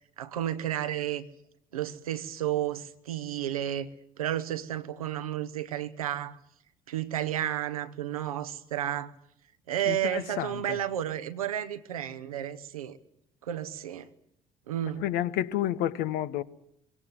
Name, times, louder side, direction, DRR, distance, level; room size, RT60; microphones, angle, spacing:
voice 1, 0.2-1.3 1.7-3.9 4.2-6.4 6.9-9.1 9.7-13.0 13.4-14.1 14.7-15.0, right 11 dB, 85° right, 0.9 m, -32 dB
voice 2, 9.8-10.8 14.8-16.4, left 12 dB, 65° left, 0.9 m, -30 dB
21.5 x 17.0 x 9.5 m
figure-of-eight pair, 50°, 18 cm